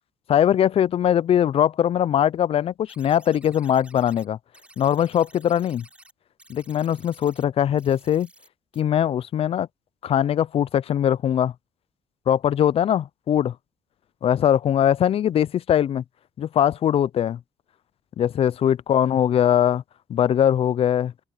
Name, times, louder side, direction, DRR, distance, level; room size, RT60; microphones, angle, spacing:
voice 1, 0.3-4.4 4.8-5.8 6.5-8.3 8.8-9.7 10.0-11.5 12.3-13.5 14.2-16.0 16.4-17.4 18.2-19.8 20.1-21.1, left 10 dB, 55° left, 0.5 m, -21 dB
sound 1, 2.9-4.3 4.5-6.1 6.4-7.4 7.8-8.5 8.7-8.8, right 1 dB, 10° right, 4.1 m, -52 dB
supercardioid pair, 65°, 12 cm